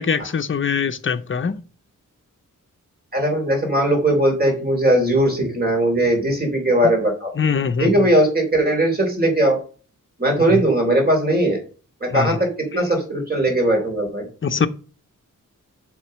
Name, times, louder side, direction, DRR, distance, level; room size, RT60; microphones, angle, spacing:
voice 1, 0.0-1.6 7.4-8.1 10.5-10.6 12.1-12.4 12.7-12.8 14.4-14.7, left 6 dB, 40° left, 0.7 m, -22 dB
voice 2, 3.1-7.3 7.8-9.6 10.2-11.6 12.0-14.3, right 1 dB, 30° right, 3.0 m, -19 dB
7.5 x 3.8 x 6.3 m
wide cardioid pair, 150°, 31 cm